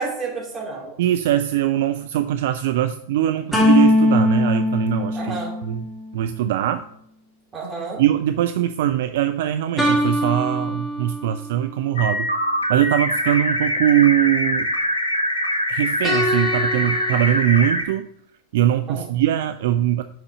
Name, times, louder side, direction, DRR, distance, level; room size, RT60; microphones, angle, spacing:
voice 1, 0.0-0.9 5.1-5.6 7.5-8.0 18.9-19.0, right 4 dB, 20° right, -3 dB, 3.0 m, -30 dB
voice 2, 1.0-5.9 6.1-6.8 8.0-12.3 12.7-14.7 15.7-18.1 18.5-20.0, right 12 dB, 55° right, 10 dB, 0.3 m, -21 dB
sound 1, 3.5-6.1 9.8-11.6 16.0-17.4, left 1 dB, 5° left, 1.6 m, -21 dB
sound 2, 12.0-17.8, left 1 dB, 80° left, 1.1 m, -23 dB
6.1 x 5.5 x 4.8 m, 0.69 s
figure-of-eight pair, 90°, 0 cm